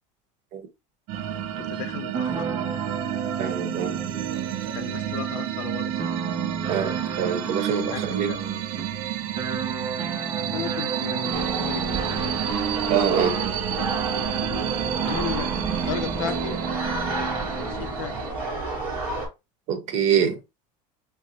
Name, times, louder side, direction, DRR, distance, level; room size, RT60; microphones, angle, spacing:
sound 1, 1.1-17.9, right 6 dB, 30° right, 0.7 m, -32 dB
sound 2, 1.1-18.3, right 12 dB, 65° right, 0.5 m, -31 dB
voice 1, 1.6-2.5 2.8-3.0 4.7-6.0 7.8-8.4 10.5-12.2 13.7-13.9 15.0-16.6 17.4-18.4, left 10 dB, 80° left, 0.7 m, -35 dB
voice 2, 3.4-3.9 6.7-8.3 12.9-13.4 19.7-20.4, right 8 dB, 50° right, 1.1 m, -25 dB
sound 3, 11.3-19.3, right 2 dB, 10° right, 2.5 m, -31 dB
5.5 x 2.0 x 2.9 m
supercardioid pair, 135°, 16 cm